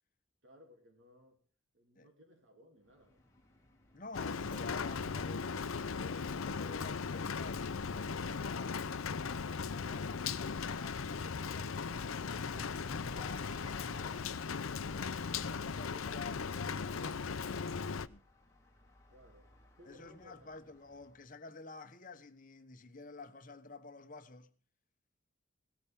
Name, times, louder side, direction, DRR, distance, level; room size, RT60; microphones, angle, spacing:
voice 1, 0.4-1.4 1.7-3.2 19.1-20.5, left 1 dB, 60° right, 2.9 m, -61 dB
Bus, 2.8-21.4, left 1 dB, 15° left, 2.2 m, -61 dB
voice 2, 3.9-8.8 9.5-14.2 14.9-17.8 18.1-18.2 19.8-24.5, left 3 dB, 40° left, 1.1 m, -51 dB
Rain, 4.1-18.1, left 5 dB, 90° left, 0.6 m, -38 dB
18.0 x 13.0 x 3.6 m
head